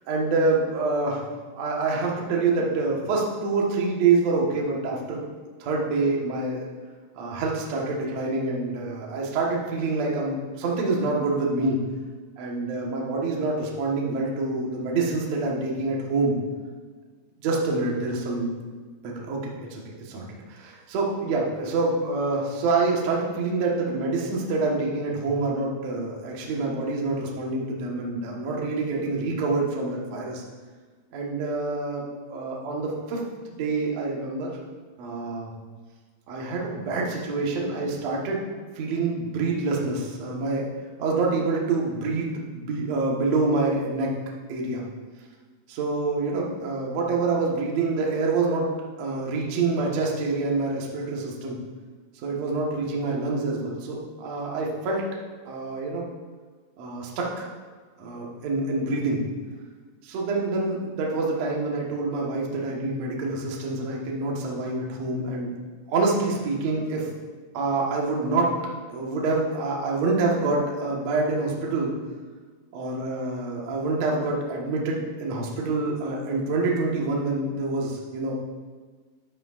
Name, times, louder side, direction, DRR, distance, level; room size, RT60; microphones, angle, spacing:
voice 1, 0.1-1.3 1.5-5.2 5.6-6.6 7.1-11.8 12.4-16.3 17.4-18.5 19.0-30.4 31.1-32.0 32.3-34.5 35.0-35.5 36.3-38.5 38.7-40.6 41.0-44.1 44.5-44.8 45.7-48.7 49.0-51.6 52.2-55.0 55.5-56.1 56.8-57.5 58.0-59.2 60.0-65.5 65.9-67.1 67.5-68.6 68.9-71.9 72.7-78.3, right 3 dB, 80° right, -2 dB, 1.5 m, -26 dB
11.0 x 11.0 x 2.5 m, 1.5 s
omnidirectional pair, 5.3 m